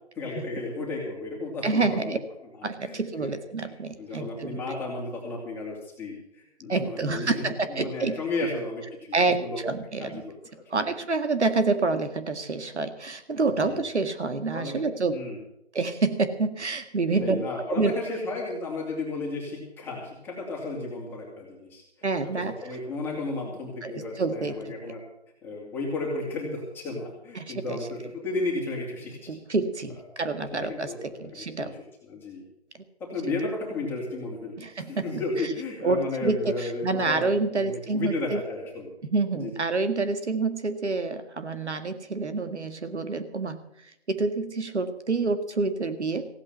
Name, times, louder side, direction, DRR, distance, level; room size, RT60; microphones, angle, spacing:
voice 1, 0.2-2.2 2.8-3.3 3.7-9.7 10.0-10.3 10.7-10.9 13.5-13.8 14.5-14.8 15.1-15.4 17.1-21.8 22.2-25.0 25.4-29.3 30.6-32.4 33.0-38.9 39.3-39.5, left 3 dB, 5° left, -2 dB, 2.6 m, -34 dB
voice 2, 1.6-2.2 2.6-4.8 6.7-8.2 9.1-10.2 10.7-15.1 15.7-17.4 17.7-17.9 22.0-22.5 23.8-24.7 27.4-27.8 29.3-30.9 31.2-31.8 34.6-35.1 35.8-38.4 39.1-43.6 44.1-46.3, right 3 dB, 80° right, 10 dB, 1.9 m, -27 dB
16.0 x 8.7 x 7.9 m, 0.78 s
figure-of-eight pair, 155°, 34 cm